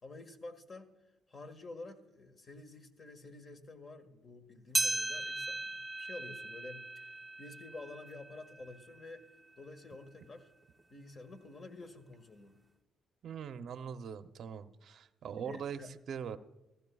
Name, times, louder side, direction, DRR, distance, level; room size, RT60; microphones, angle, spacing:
voice 1, 0.0-0.9 1.3-9.2 9.6-10.5 10.9-12.6 15.4-15.9, left 2 dB, 40° left, 7 dB, 1.6 m, -50 dB
sound 1, 4.7-9.4 9.9-10.0 10.8-10.9 11.8-11.9, right 2 dB, 10° right, 0.7 m, -38 dB
voice 2, 13.2-15.8 16.1-16.4, right 7 dB, 65° right, 10 dB, 0.7 m, -41 dB
15.5 x 14.5 x 2.3 m, 1.0 s
cardioid pair, 90°, 0 cm